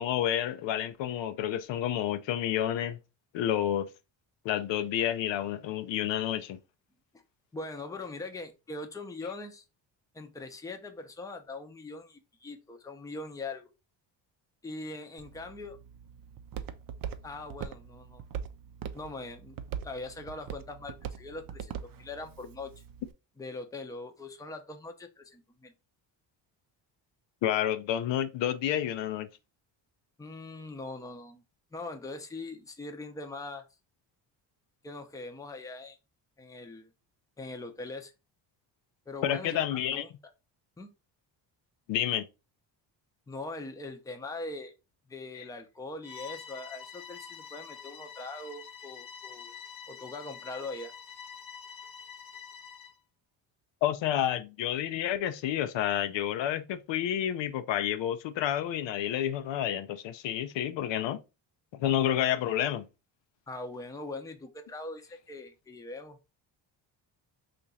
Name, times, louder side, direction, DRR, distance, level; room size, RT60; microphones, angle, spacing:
voice 1, 0.0-3.0 3.3-3.9 4.4-6.6 27.4-29.3 39.2-40.0 41.9-42.2 45.3-45.4 53.8-61.2 61.8-62.8, left 11 dB, 70° left, 0.5 m, -29 dB
voice 2, 7.5-9.6 10.1-13.7 14.6-15.8 17.2-18.2 18.9-19.6 19.8-22.8 23.4-25.7 30.2-31.4 31.7-33.6 34.8-36.0 36.4-36.9 37.4-38.1 39.1-39.6 39.9-40.1 40.8-40.9 43.3-44.7 45.1-49.5 49.9-50.9 63.5-66.2, left 2 dB, 10° left, 0.6 m, -41 dB
Walk footsteps, 15.2-23.1, right 8 dB, 50° right, 0.5 m, -42 dB
Bowed string instrument, 46.0-53.0, left 7 dB, 45° left, 0.8 m, -46 dB
2.9 x 2.5 x 4.0 m
cardioid pair, 85°, 46 cm